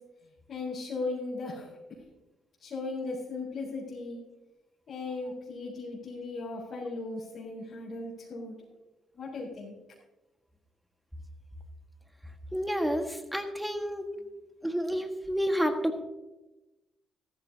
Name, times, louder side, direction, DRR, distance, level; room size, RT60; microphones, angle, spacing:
voice 1, 0.5-1.7 2.6-4.2 4.9-8.5 9.1-9.7, left 3 dB, 55° left, -6 dB, 4.0 m, -37 dB
voice 2, 12.5-14.1 14.6-16.0, equal, 5° right, 5 dB, 1.5 m, -30 dB
14.5 x 13.5 x 2.8 m, 1.1 s
cardioid pair, 90°, 0 cm